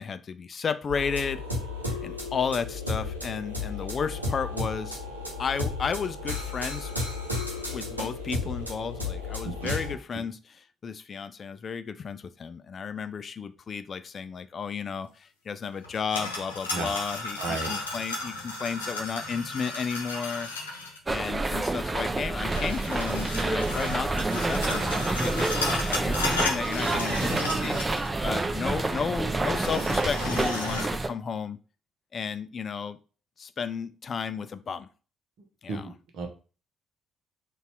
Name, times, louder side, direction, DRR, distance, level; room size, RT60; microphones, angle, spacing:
voice 1, 0.0-1.4 2.0-5.0 5.4-6.9 7.7-20.5 21.1-27.8 28.2-31.6 32.1-33.0 33.4-34.9 35.6-35.9, left 6 dB, 40° left, 12 dB, 0.4 m, -33 dB
sound 1, 0.9-9.9, left 3 dB, 90° right, 0.7 m, -33 dB
sound 2, 15.8-21.0 22.5-28.2 28.4-28.5 29.4-30.9, left 2 dB, 80° left, 0.7 m, -34 dB
voice 2, 17.4-17.7 35.7-36.3, right 3 dB, 60° right, 4 dB, 0.9 m, -33 dB
sound 3, 21.1-31.1, right 2 dB, 25° right, 0.6 m, -28 dB
4.0 x 2.4 x 4.4 m, 0.36 s
figure-of-eight pair, 45°, 0 cm